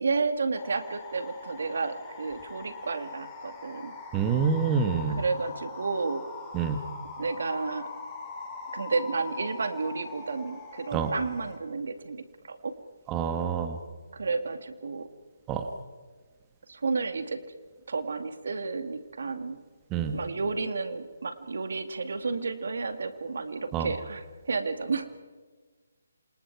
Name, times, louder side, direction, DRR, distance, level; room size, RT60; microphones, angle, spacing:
voice 1, 0.0-3.9 5.2-6.3 7.2-7.9 8.7-12.7 14.1-15.1 16.7-17.5 17.9-19.6 20.1-25.1, right 4 dB, 65° right, 9 dB, 2.2 m, -31 dB
sound 1, 0.5-11.6, left 4 dB, 15° left, 3.9 m, -42 dB
voice 2, 4.1-5.2 6.5-6.8 10.9-11.1 13.1-13.8 15.5-15.7 19.9-20.2 23.7-23.9, right 6 dB, 20° right, 7 dB, 1.6 m, -27 dB
27.5 x 27.0 x 4.8 m, 1.4 s
figure-of-eight pair, 150°, 0 cm